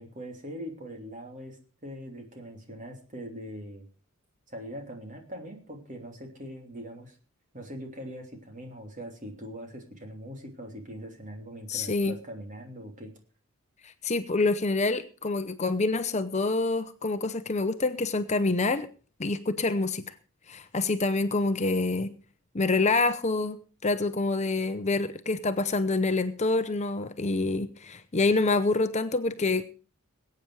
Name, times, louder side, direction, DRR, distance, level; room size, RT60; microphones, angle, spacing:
voice 1, 0.0-1.6 1.8-3.9 4.5-7.2 7.5-13.1, equal, 35° right, 3 dB, 3.1 m, -41 dB
voice 2, 11.7-12.1 14.0-18.9 19.2-20.0 20.5-22.1 22.5-29.6, left 3 dB, 35° left, 10 dB, 0.8 m, -26 dB
21.0 x 9.0 x 4.7 m, 0.36 s
head